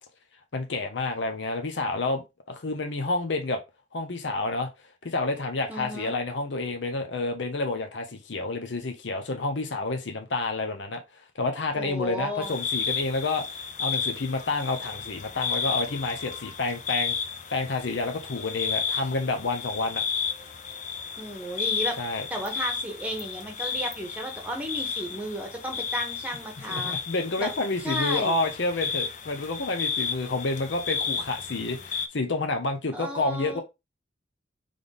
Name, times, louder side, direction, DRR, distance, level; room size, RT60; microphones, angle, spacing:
voice 1, 0.5-2.2 2.5-3.6 3.9-4.7 5.0-11.0 11.3-13.5 13.8-17.2 17.5-20.0 22.0-22.3 26.7-33.6, left 3 dB, 75° left, 0.8 m, -29 dB
voice 2, 5.7-6.2 11.7-12.5 21.2-22.0 22.3-27.0 27.4-27.5 27.8-28.3 32.9-33.6, equal, 10° right, 1.2 m, -34 dB
sound 1, 12.4-32.1, left 6 dB, 40° left, 0.6 m, -32 dB
3.6 x 3.3 x 3.9 m
head